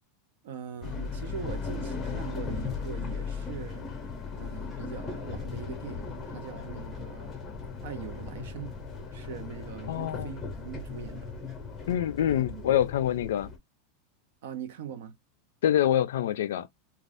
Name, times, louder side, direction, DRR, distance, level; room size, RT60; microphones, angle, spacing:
voice 1, 0.4-3.9 4.4-7.3 7.8-8.7 9.1-11.3 12.3-12.7 14.4-15.2, right 8 dB, 70° right, 0.7 m, -42 dB
sound 1, 0.8-13.6, left 5 dB, 20° left, 0.7 m, -37 dB
voice 2, 9.9-10.3 11.9-13.5 15.6-16.7, left 11 dB, 85° left, 0.4 m, -26 dB
2.6 x 2.3 x 3.3 m
supercardioid pair, 160°, 0 cm